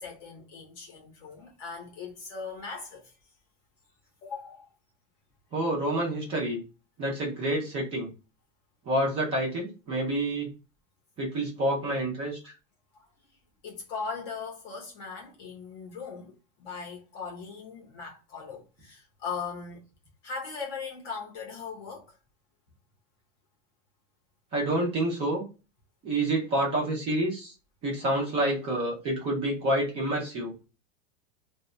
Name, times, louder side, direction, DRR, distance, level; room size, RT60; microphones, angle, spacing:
voice 1, 0.0-3.1 4.2-4.7 12.9-13.1 13.6-19.8 20.2-22.1, left 5 dB, 25° left, 0.7 m, -39 dB
voice 2, 5.5-6.6 7.0-8.1 8.9-10.5 11.2-12.5 24.5-25.4 26.0-27.5 27.8-30.5, right 1 dB, 15° right, 0.5 m, -28 dB
2.1 x 2.1 x 3.6 m
supercardioid pair, 170°, 39 cm